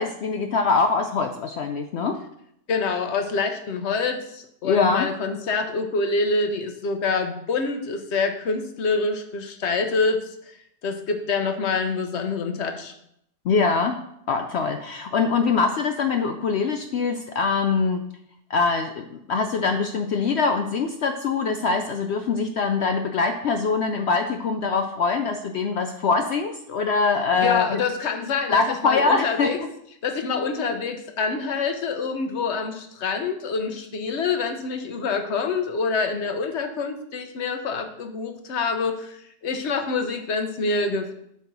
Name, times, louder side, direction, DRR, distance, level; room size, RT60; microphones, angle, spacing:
voice 1, 0.0-2.2 4.6-5.1 13.5-14.0 14.3-18.0 18.5-27.8 28.5-29.6, left 4 dB, 70° left, 6 dB, 0.6 m, -23 dB
voice 2, 2.7-10.3 10.8-12.9 27.3-29.6 30.0-41.1, left 4 dB, 55° left, 6 dB, 1.0 m, -26 dB
8.4 x 3.5 x 5.8 m, 0.74 s
omnidirectional pair, 1.6 m